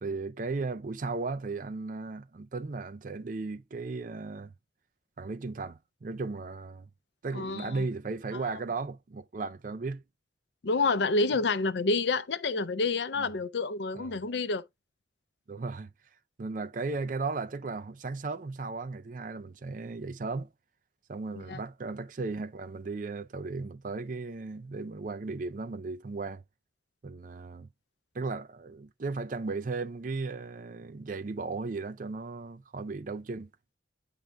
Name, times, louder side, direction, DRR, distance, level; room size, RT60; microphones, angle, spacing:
voice 1, 0.0-4.5 5.2-6.9 7.2-10.0 13.2-13.3 13.9-14.2 15.5-15.9 16.4-20.5 21.1-26.4 27.0-27.7 28.1-33.5, right 3 dB, 45° right, 0.4 m, -36 dB
voice 2, 7.3-7.9 10.6-14.6 21.3-21.6, left 3 dB, 70° left, 0.6 m, -28 dB
9.1 x 3.6 x 3.4 m
head